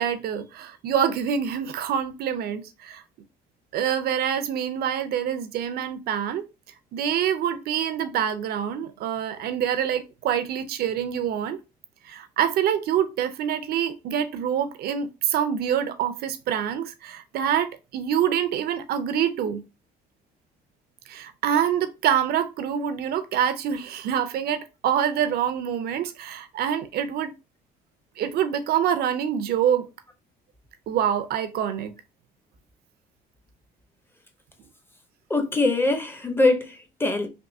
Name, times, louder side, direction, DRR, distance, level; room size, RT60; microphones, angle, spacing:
voice 1, 0.0-3.0 3.7-6.4 6.9-11.6 12.0-19.6 21.1-27.3 28.2-29.9 30.9-31.9, right 9 dB, 65° right, 0.5 m, -26 dB
voice 2, 35.3-37.3, left 2 dB, 15° left, 0.6 m, -23 dB
3.6 x 2.6 x 2.6 m
cardioid pair, 110°, 17 cm